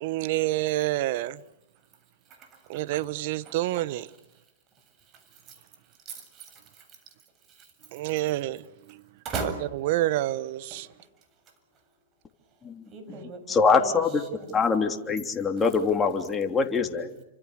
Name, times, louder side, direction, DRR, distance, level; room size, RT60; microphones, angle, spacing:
voice 1, 0.0-1.4 2.7-4.1 7.9-9.0 9.4-10.9 13.1-13.2, right 16 dB, 55° right, 1.2 m, -28 dB
voice 2, 2.3-3.1 3.4-3.8 5.1-5.6 6.1-7.0 7.5-7.7 9.2-9.6 10.7-10.8 12.9-14.0 14.3-14.8, right 4 dB, 30° right, 7.5 m, -39 dB
voice 3, 12.6-13.2 13.5-14.2 14.5-17.2, left 5 dB, 15° left, 3.2 m, -24 dB
29.5 x 26.5 x 6.7 m
hypercardioid pair, 115°, 0 cm